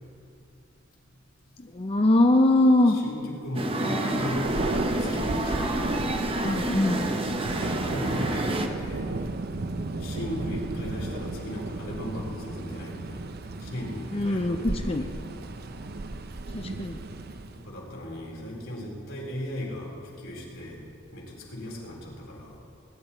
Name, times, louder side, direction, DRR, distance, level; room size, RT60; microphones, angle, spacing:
voice 1, 1.6-3.0 6.4-7.1 14.1-15.0 16.5-17.0, left 1 dB, 30° left, 5 dB, 0.5 m, -22 dB
voice 2, 2.9-4.6 5.1-5.9 7.6-9.1 10.0-13.1 13.6-15.1 17.6-19.9 20.2-20.8 21.1-22.5, left 1 dB, 85° left, -4 dB, 4.0 m, -36 dB
sound 1, 3.5-8.7, right 1 dB, 30° right, 0.9 m, -28 dB
Thunder, 4.1-17.7, right 2 dB, 50° right, 0.6 m, -35 dB
21.0 x 10.5 x 4.4 m, 2.5 s
head